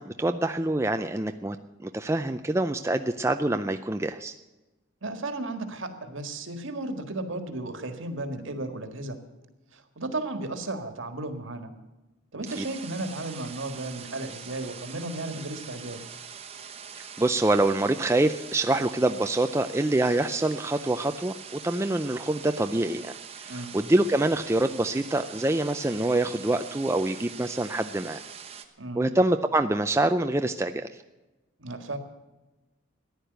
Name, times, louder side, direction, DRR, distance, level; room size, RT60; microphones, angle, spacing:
voice 1, 0.0-1.6 1.8-4.3 12.6-12.7 17.0-28.2 29.0-31.0, right 2 dB, 15° right, 7 dB, 0.4 m, -26 dB
voice 2, 5.0-9.2 9.7-11.7 12.3-16.1 23.5-23.8 28.8-29.1 31.6-32.0, right 2 dB, 70° right, 7 dB, 1.7 m, -34 dB
sound 1, 12.4-28.6, right 7 dB, 30° right, 1.0 m, -43 dB
14.5 x 10.5 x 8.0 m, 1.1 s
head